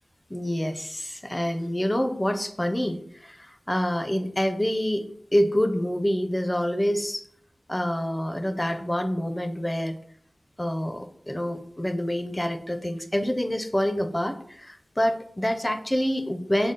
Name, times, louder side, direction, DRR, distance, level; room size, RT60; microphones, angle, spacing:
voice 1, 0.3-5.1 5.3-7.2 7.7-9.9 10.6-16.7, equal, 15° left, 9 dB, 0.4 m, -27 dB
5.0 x 2.0 x 3.7 m, 0.63 s
wide cardioid pair, 65°, 0 cm